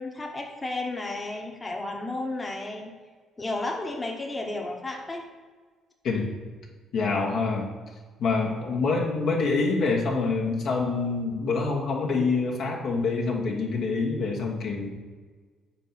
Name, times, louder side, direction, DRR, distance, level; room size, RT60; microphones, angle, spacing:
voice 1, 0.0-2.9 3.4-5.3, left 2 dB, 20° left, 1 dB, 1.0 m, -33 dB
voice 2, 6.9-7.7 8.2-14.9, left 4 dB, 70° left, -2 dB, 1.3 m, -26 dB
4.5 x 4.4 x 5.7 m, 1.4 s
supercardioid pair, 65°, 0 cm